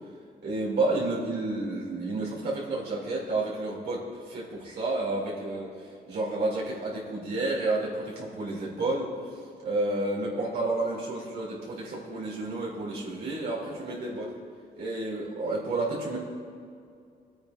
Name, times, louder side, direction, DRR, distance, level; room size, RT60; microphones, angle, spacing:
voice 1, 0.4-5.7 6.1-9.1 9.6-14.3 14.8-16.2, right 2 dB, 75° right, -5 dB, 2.9 m, -30 dB
20.5 x 9.4 x 2.6 m, 2.3 s
wide cardioid pair, 135°, 17 cm